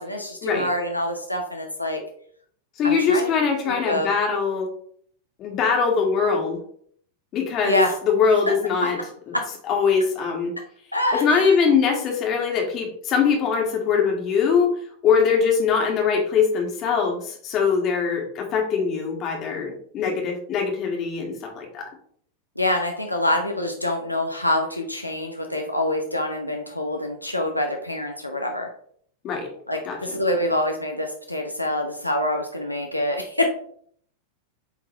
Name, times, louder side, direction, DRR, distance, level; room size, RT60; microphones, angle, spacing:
voice 1, 0.0-2.0 2.8-3.3 3.7-4.1 7.6-7.9 8.8-8.9 9.3-9.4 10.9-11.6 22.6-28.7 29.7-33.4, left 1 dB, 90° left, 2 dB, 0.7 m, -26 dB
voice 2, 2.8-4.7 5.4-6.6 7.3-9.0 9.7-10.5 11.1-14.7 15.0-21.9 29.2-29.5 29.9-30.0, left 6 dB, 35° left, 1 dB, 1.9 m, -22 dB
8.3 x 3.9 x 3.2 m, 0.62 s
figure-of-eight pair, 90°, 0 cm